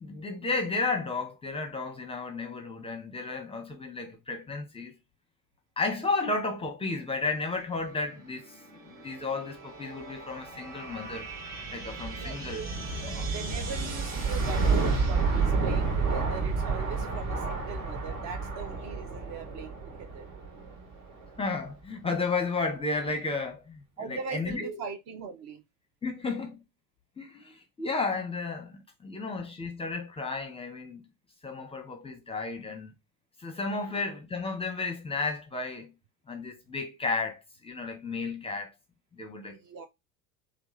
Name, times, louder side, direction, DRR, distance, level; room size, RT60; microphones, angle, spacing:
voice 1, 0.0-4.9 5.8-8.6 8.9-11.3 11.7-12.6 13.0-13.3 21.4-24.8 26.0-26.6 27.2-31.1 31.4-32.9 33.4-35.9 36.3-38.7 39.1-39.6, left 3 dB, 10° left, 0.6 m, -33 dB
sound 1, 8.2-21.7, right 4 dB, 70° right, 1.6 m, -31 dB
voice 2, 11.9-12.7 13.3-20.3 24.0-25.6 33.9-34.0 39.5-39.9, right 6 dB, 40° right, 0.6 m, -40 dB
3.4 x 2.4 x 3.0 m
figure-of-eight pair, 70°, 47 cm